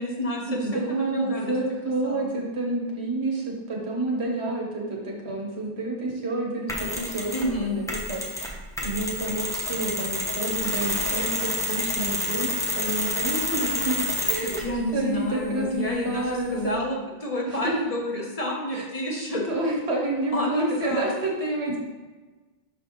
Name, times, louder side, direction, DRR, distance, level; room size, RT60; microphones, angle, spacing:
voice 1, 0.0-0.6 0.9-1.5 2.0-2.3 7.3-7.8 14.6-19.4 20.3-21.1, left 1 dB, 35° left, -2 dB, 1.0 m, -29 dB
voice 2, 0.6-8.5 8.8-12.5 12.7-14.6 14.9-16.7 17.5-17.8 18.7-18.8 19.5-21.8, right 2 dB, 90° right, -2 dB, 1.5 m, -29 dB
Mechanisms, 6.7-7.5 7.9-14.7, left 1 dB, 5° left, 0.8 m, -29 dB
6.3 x 4.9 x 3.0 m, 1.2 s
omnidirectional pair, 1.1 m